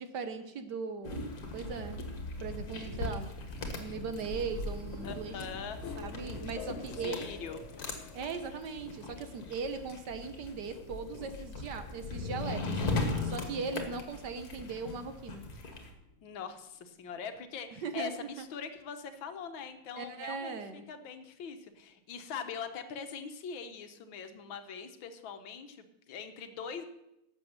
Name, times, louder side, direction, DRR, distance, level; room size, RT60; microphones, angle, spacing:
voice 1, 0.0-2.0 2.4-3.4 3.8-5.4 6.0-7.3 8.1-12.8 13.2-15.4 17.7-18.1 18.4-18.5 20.0-20.9, right 5 dB, 60° right, 9 dB, 1.3 m, -39 dB
sound 1, 1.0-15.9, left 2 dB, 45° left, 1.9 m, -39 dB
sound 2, 3.5-17.3, left 7 dB, 85° left, 0.6 m, -51 dB
voice 2, 5.0-5.8 6.9-7.6 16.2-26.9, left 6 dB, 65° left, 9 dB, 1.7 m, -42 dB
11.5 x 7.6 x 6.5 m, 0.88 s
omnidirectional pair, 2.4 m